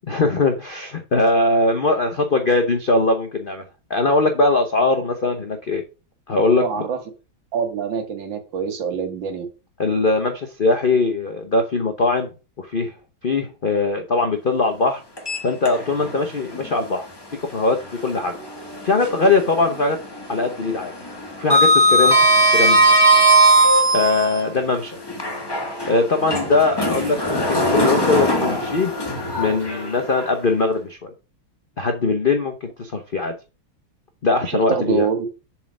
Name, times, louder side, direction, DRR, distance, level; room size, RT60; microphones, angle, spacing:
voice 1, 0.1-3.6 3.9-5.8 6.3-6.9 9.8-12.3 12.6-12.9 13.2-15.0 15.4-17.1 17.5-17.8 18.0-18.3 18.8-20.0 20.3-20.9 21.4-23.0 23.9-25.0 25.9-28.9 29.4-31.1 31.8-33.3 34.2-35.1, left 3 dB, 55° left, 5 dB, 0.5 m, -21 dB
voice 2, 6.6-7.0 7.5-9.5 34.5-35.3, right 6 dB, 65° right, 7 dB, 2.0 m, -25 dB
Sliding door, 15.2-16.2 16.5-16.7 18.4-19.4 19.7-20.1 20.3-24.4 25.1-30.3, right 1 dB, 15° left, 1.3 m, -18 dB
7.3 x 4.6 x 6.1 m, 0.32 s
omnidirectional pair, 2.3 m